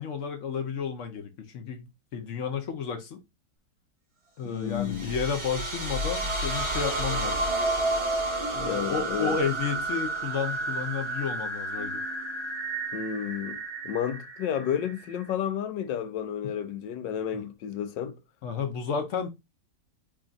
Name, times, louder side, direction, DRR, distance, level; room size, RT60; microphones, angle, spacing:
voice 1, 0.0-3.2 4.4-7.5 8.5-12.0 16.4-16.5 18.4-19.3, left 6 dB, 60° left, 0.8 m, -32 dB
voice 2, 4.4-5.1 8.7-9.4 12.9-13.6 13.8-18.2, left 9 dB, 85° left, 1.3 m, -31 dB
sound 1, 4.7-15.3, right 2 dB, 25° right, 0.7 m, -31 dB
Keyboard (musical), 11.8-13.6, right 7 dB, 60° right, 1.3 m, -51 dB
3.5 x 2.4 x 3.9 m
omnidirectional pair, 1.9 m